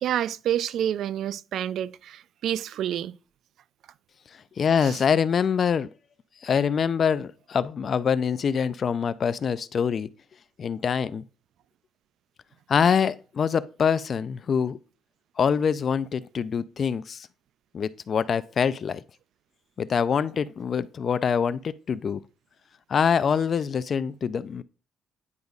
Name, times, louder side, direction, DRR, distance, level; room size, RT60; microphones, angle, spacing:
voice 1, 0.0-3.2 4.8-5.0, right 10 dB, 70° right, 0.3 m, -28 dB
voice 2, 4.6-5.9 6.4-10.1 10.6-11.2 12.7-14.8 15.4-17.3 17.7-19.0 19.8-22.2 22.9-24.6, left 7 dB, 45° left, 0.3 m, -25 dB
9.5 x 5.1 x 2.4 m
cardioid pair, 115°, 0 cm